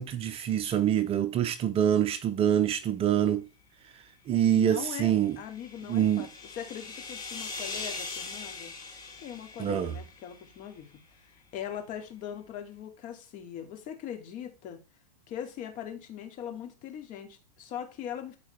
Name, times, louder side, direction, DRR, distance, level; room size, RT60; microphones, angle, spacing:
voice 1, 0.0-3.5 3.9-5.4 5.9-6.3 9.6-9.9, right 10 dB, 25° right, 0.7 m, -26 dB
voice 2, 4.4-6.3 6.6-8.7 9.2-10.9 11.2-14.8 15.3-18.4, left 9 dB, 40° left, 2.6 m, -40 dB
sound 1, 4.9-10.5, left 3 dB, 15° left, 4.0 m, -41 dB
13.0 x 4.8 x 3.4 m
hypercardioid pair, 130°, 21 cm